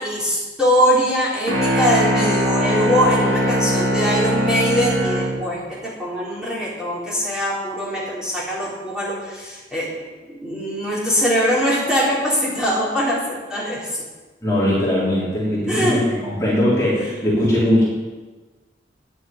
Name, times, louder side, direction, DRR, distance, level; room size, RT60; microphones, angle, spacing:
voice 1, 0.0-9.9 10.3-14.0 15.7-16.0 17.0-17.1, equal, 5° right, -8 dB, 3.7 m, -22 dB
sound 1, 1.5-5.4, equal, 85° right, 3.8 m, -20 dB
voice 2, 14.4-17.8, left 1 dB, 15° left, -8 dB, 3.4 m, -20 dB
10.0 x 7.2 x 9.2 m, 1.3 s
head